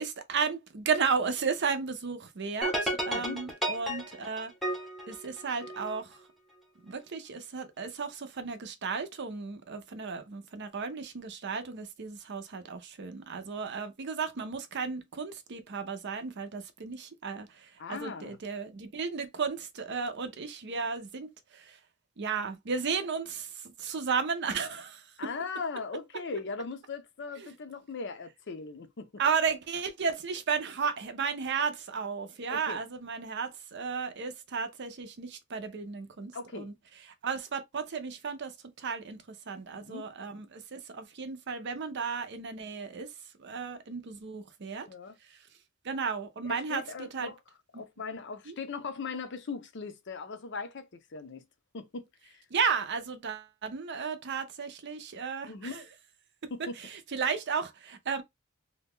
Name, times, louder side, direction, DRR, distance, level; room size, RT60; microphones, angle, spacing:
voice 1, 0.0-4.5 5.1-6.2 6.8-21.8 22.2-25.1 27.4-27.5 29.2-36.7 37.2-43.1 43.4-44.9 45.3-45.4 45.8-47.3 48.5-48.6 52.5-55.8 56.4-58.2, right 5 dB, 50° right, 0.5 m, -34 dB
sound 1, 2.6-6.0, right 1 dB, ahead, 0.7 m, -33 dB
voice 2, 3.1-3.4 17.8-18.4 25.2-29.1 32.5-32.8 36.3-36.7 39.7-40.1 44.9-45.1 46.5-47.4 47.8-51.4 51.7-52.4 55.4-55.9 56.5-56.7, left 4 dB, 55° left, 0.5 m, -39 dB
2.7 x 2.2 x 3.5 m
head